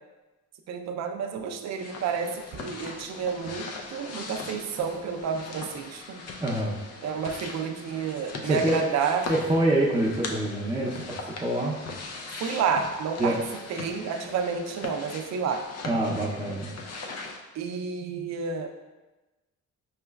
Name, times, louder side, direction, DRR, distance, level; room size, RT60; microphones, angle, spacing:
voice 1, 0.7-6.2 7.0-9.3 12.4-13.4 13.7-15.7 17.5-18.7, right 6 dB, 60° right, 6 dB, 0.5 m, -30 dB
sound 1, 1.8-17.4, left 3 dB, 55° left, 0.5 m, -40 dB
voice 2, 6.4-6.8 8.4-8.8 9.3-11.8 13.2-13.4 15.8-16.7, right 1 dB, 15° right, -6 dB, 0.6 m, -26 dB
4.7 x 3.1 x 2.3 m, 1.1 s
cardioid pair, 90°, 30 cm